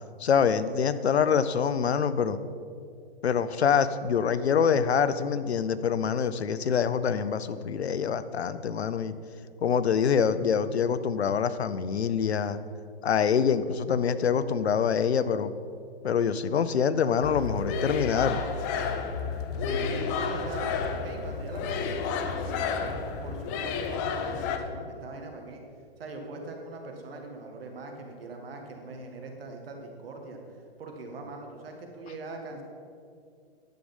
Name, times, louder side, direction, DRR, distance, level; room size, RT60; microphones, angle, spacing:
voice 1, 0.2-2.4 3.2-9.1 9.6-12.6 13.0-15.5 16.0-18.4, left 7 dB, 90° left, 14 dB, 0.7 m, -25 dB
sound 1, 17.2-24.6, left 5 dB, 20° left, 0.4 m, -31 dB
voice 2, 19.6-20.7 21.0-25.6 26.0-32.6, right 3 dB, 65° right, 3 dB, 2.0 m, -41 dB
10.5 x 6.5 x 5.4 m, 2.4 s
hypercardioid pair, 140°, 31 cm